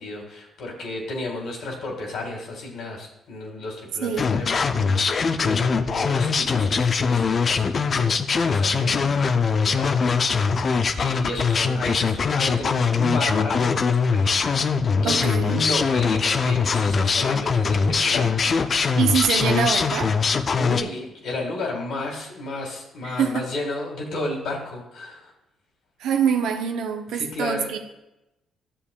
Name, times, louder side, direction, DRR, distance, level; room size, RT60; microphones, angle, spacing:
voice 1, 0.0-8.1 8.4-19.0 20.6-25.3 27.1-27.7, left 2 dB, 70° left, 1 dB, 2.1 m, -33 dB
sound 1, 4.2-20.8, left 5 dB, 50° left, 0.5 m, -22 dB
voice 2, 15.0-15.6 19.0-20.1 23.0-23.5 26.0-27.8, right 7 dB, 75° right, 5 dB, 0.8 m, -24 dB
11.5 x 6.8 x 2.4 m, 0.91 s
supercardioid pair, 60°, 0 cm